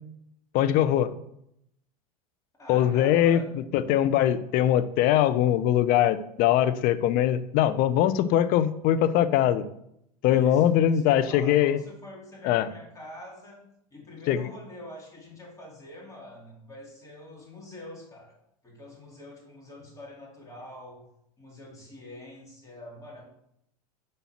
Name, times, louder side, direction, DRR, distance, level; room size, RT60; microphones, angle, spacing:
voice 1, 0.5-1.1 2.7-9.6 10.2-11.8 12.4-12.7 14.3-14.4, left 11 dB, 50° left, 13 dB, 0.6 m, -22 dB
voice 2, 2.6-3.7 10.3-18.3 18.6-21.0 21.4-23.2, left 1 dB, 15° left, -4 dB, 2.9 m, -45 dB
5.2 x 4.2 x 5.9 m, 0.76 s
hypercardioid pair, 95°, 20 cm